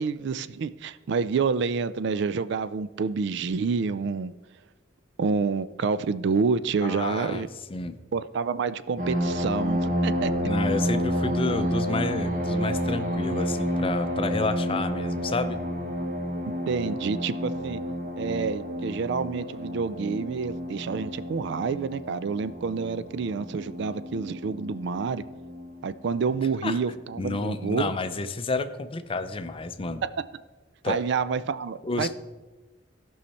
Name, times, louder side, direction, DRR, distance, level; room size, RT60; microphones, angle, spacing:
voice 1, 0.0-4.3 5.2-7.5 8.1-10.3 16.5-17.8 18.2-25.2 25.8-27.9 30.0-30.1 30.9-32.1, right 5 dB, 65° right, 15 dB, 0.4 m, -28 dB
voice 2, 6.8-8.0 10.4-15.6 26.6-26.8 27.2-30.0 30.8-31.0 31.8-32.1, left 3 dB, 30° left, 10 dB, 0.5 m, -30 dB
sound 1, 9.0-26.0 26.7-26.8 27.2-27.4, equal, 45° right, 1.4 m, -30 dB
16.0 x 5.6 x 4.2 m, 1.2 s
head